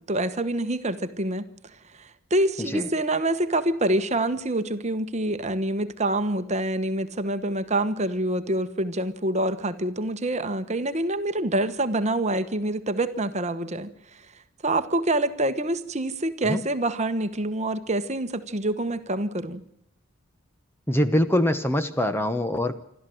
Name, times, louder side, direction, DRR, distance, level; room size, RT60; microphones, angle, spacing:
voice 1, 0.0-1.4 2.0-14.2 14.6-19.6, right 1 dB, 30° right, 11 dB, 1.2 m, -26 dB
voice 2, 20.9-22.8, left 1 dB, 10° left, 10 dB, 0.9 m, -23 dB
27.0 x 13.0 x 7.8 m, 0.79 s
head